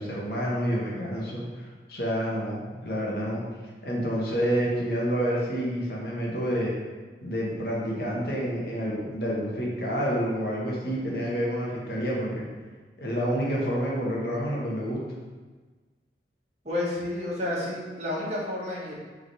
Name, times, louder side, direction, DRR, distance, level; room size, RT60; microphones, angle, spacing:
voice 1, 0.0-3.4 3.8-6.7 7.2-12.4 13.0-15.0, equal, 60° left, -4 dB, 1.4 m, -28 dB
voice 2, 16.6-18.9, left 1 dB, 40° right, -7 dB, 1.8 m, -30 dB
5.3 x 4.0 x 4.8 m, 1.4 s
head